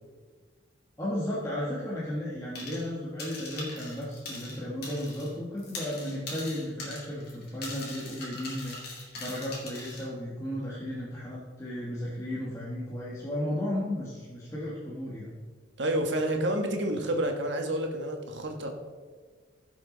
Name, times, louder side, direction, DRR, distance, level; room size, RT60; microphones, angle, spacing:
voice 1, 1.0-8.7 9.1-15.3, left 1 dB, 15° left, -7 dB, 1.5 m, -34 dB
sound 1, 2.6-2.9 3.2-5.3 5.6-10.1, left 2 dB, 50° left, 2.5 m, -41 dB
voice 2, 15.8-18.7, right 1 dB, 65° right, 4 dB, 1.4 m, -29 dB
15.5 x 6.1 x 3.9 m, 1.5 s
head